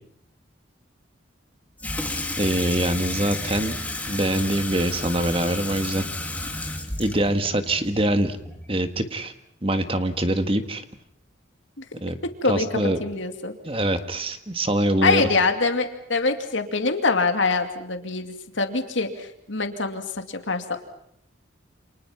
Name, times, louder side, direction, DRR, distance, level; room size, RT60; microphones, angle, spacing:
Water tap faucet / Sink (filling or washing), 1.8-8.8, left 2 dB, 10° left, 2.6 m, -32 dB
voice 1, 2.4-3.8 4.1-6.0 7.0-8.4 8.7-9.3 9.6-10.8 12.0-12.2 12.4-13.0 13.6-15.3, right 1 dB, 30° right, 8 dB, 1.7 m, -24 dB
voice 2, 12.4-13.5 15.0-20.8, left 3 dB, 75° left, 6 dB, 2.5 m, -24 dB
29.5 x 27.5 x 5.8 m, 0.71 s
head